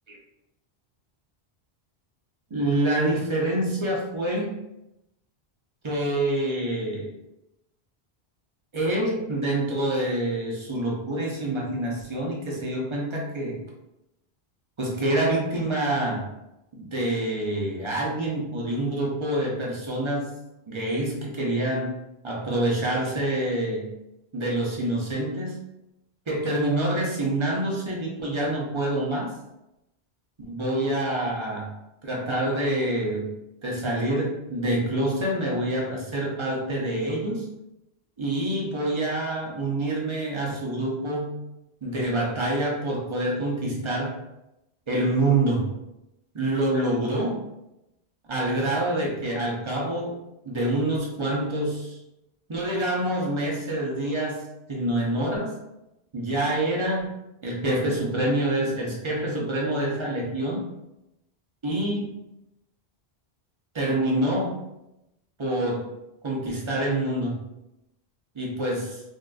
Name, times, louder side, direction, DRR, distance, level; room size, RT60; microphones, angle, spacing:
voice 1, 2.5-4.6 5.8-7.1 8.7-13.6 14.8-16.2 16.7-20.3 20.7-22.0 22.2-23.9 24.3-25.6 26.3-29.3 30.5-31.7 32.0-33.3 33.6-37.5 38.2-41.4 41.8-44.2 44.9-45.7 46.3-47.4 48.3-50.1 50.4-52.0 52.5-55.6 56.1-60.7 61.6-62.2 63.7-64.6 65.4-65.9 66.2-67.4 68.3-69.0, right 1 dB, 35° right, -3 dB, 0.6 m, -26 dB
3.6 x 2.4 x 2.3 m, 0.90 s
omnidirectional pair, 1.1 m